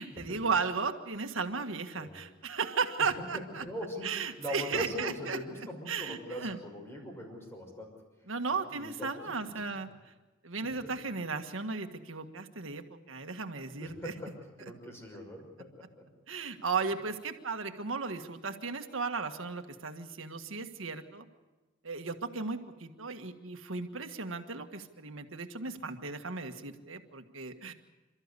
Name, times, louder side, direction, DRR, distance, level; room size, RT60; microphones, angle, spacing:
voice 1, 0.0-3.6 4.0-5.4 5.9-6.6 8.3-10.1 10.4-14.1 16.3-21.2 21.8-27.7, right 4 dB, 75° right, 6 dB, 1.6 m, -35 dB
voice 2, 3.6-7.9 8.5-9.2 13.8-14.3 14.6-16.0, equal, 15° left, 1 dB, 6.0 m, -41 dB
28.5 x 13.5 x 8.3 m, 1.2 s
head